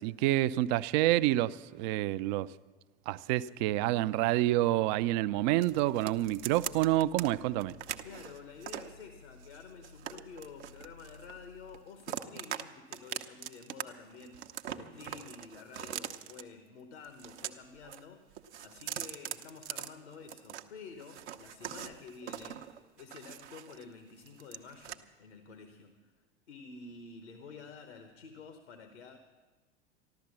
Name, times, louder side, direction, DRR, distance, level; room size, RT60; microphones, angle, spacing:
voice 1, 0.0-2.5 3.1-7.7, right 15 dB, 40° right, 0.4 m, -28 dB
sound 1, 4.3-11.8, left 5 dB, 85° left, 3.5 m, -57 dB
sound 2, 5.6-7.3 7.6-8.9 9.4-11.4 11.7-12.6 12.9-13.8 14.1-16.4 17.0-18.0 18.3-20.6 21.0-23.8 24.2-25.0, right 11 dB, 70° right, 0.8 m, -42 dB
voice 2, 8.0-26.1 26.5-29.2, left 5 dB, 70° left, 1.2 m, -50 dB
14.0 x 12.0 x 7.3 m
figure-of-eight pair, 85°, 35 cm